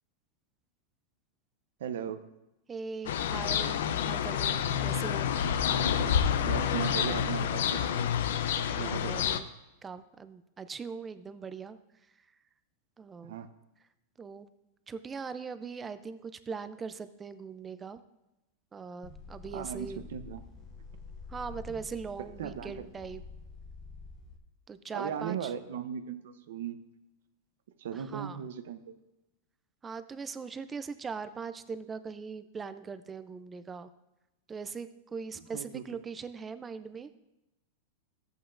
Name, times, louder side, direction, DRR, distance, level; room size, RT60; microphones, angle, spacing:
voice 1, 1.8-2.2 5.7-8.0 8.6-9.1 13.2-13.5 19.5-20.4 22.4-22.9 24.9-26.8 27.8-28.9 35.5-35.8, right 9 dB, 75° right, 10 dB, 0.7 m, -38 dB
voice 2, 2.7-3.8 4.0-5.3 8.8-9.5 9.8-11.8 13.0-13.3 14.2-14.5 14.9-18.0 18.7-20.0 21.3-23.2 24.7-25.5 27.9-28.4 29.8-33.9 34.5-37.2, right 5 dB, 10° right, 12 dB, 0.3 m, -40 dB
sound 1, 3.1-9.4, left 8 dB, 75° left, 0.5 m, -28 dB
sound 2, 19.0-24.4, left 4 dB, 25° left, 0.8 m, -47 dB
14.0 x 7.9 x 2.5 m, 0.97 s
supercardioid pair, 170°, 0 cm